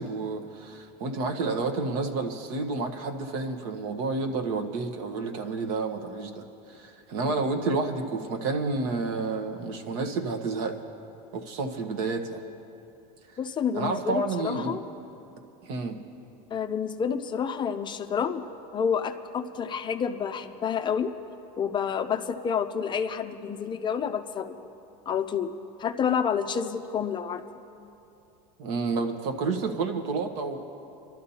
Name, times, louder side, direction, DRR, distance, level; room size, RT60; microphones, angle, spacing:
voice 1, 0.0-10.8 11.3-12.4 13.7-14.8 15.6-16.0 28.6-30.6, right 3 dB, 65° right, 5 dB, 1.2 m, -30 dB
voice 2, 13.4-14.8 16.5-18.4 18.7-21.1 21.6-24.6 25.1-25.5 25.8-27.4, left 7 dB, 20° left, 8 dB, 0.5 m, -29 dB
28.5 x 12.0 x 2.8 m, 2.7 s
supercardioid pair, 135°, 21 cm